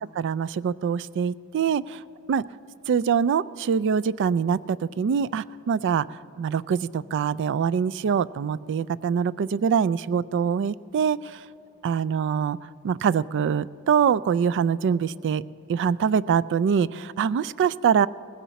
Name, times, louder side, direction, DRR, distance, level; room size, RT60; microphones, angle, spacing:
voice 1, 0.2-2.0 2.3-2.4 2.9-6.0 6.4-11.4 11.8-12.6 12.8-15.4 15.7-18.1, right 7 dB, 55° right, 19 dB, 0.3 m, -24 dB
19.0 x 16.0 x 4.1 m, 2.9 s
head